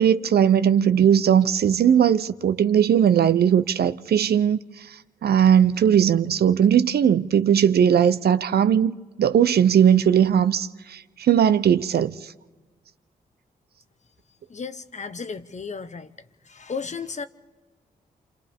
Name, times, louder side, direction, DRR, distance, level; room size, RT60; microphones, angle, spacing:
voice 1, 0.0-4.6 5.2-12.1, right 8 dB, 70° right, 0.6 m, -19 dB
voice 2, 14.5-16.1 16.4-17.3, left 5 dB, 45° left, 1.0 m, -34 dB
28.5 x 27.0 x 3.6 m
supercardioid pair, 55°, 17 cm